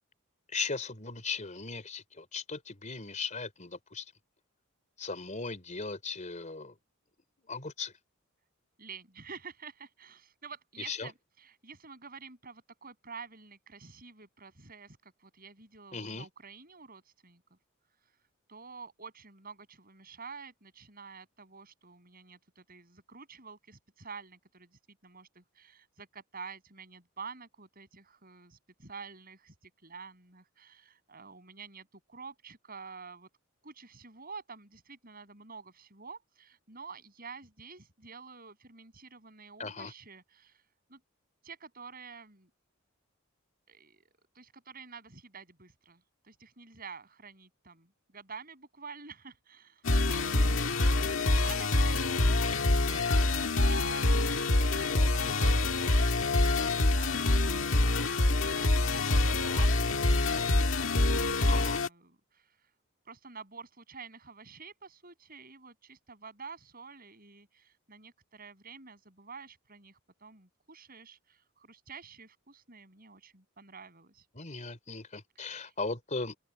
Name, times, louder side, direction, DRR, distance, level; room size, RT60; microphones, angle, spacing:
voice 1, 0.5-4.0 5.0-6.7 7.5-7.9 10.9-11.1 15.9-16.3 39.6-39.9 54.9-55.3 61.5-61.8 74.3-76.4, left 4 dB, 35° left, 4.0 m, -38 dB
voice 2, 8.8-17.6 18.0-33.3 33.6-41.0 41.4-42.5 43.7-52.3 53.0-62.7 63.0-74.3 75.3-75.7, right 5 dB, 45° right, 7.9 m, -49 dB
sound 1, 49.8-61.9, left 2 dB, 65° left, 1.9 m, -26 dB
open air
head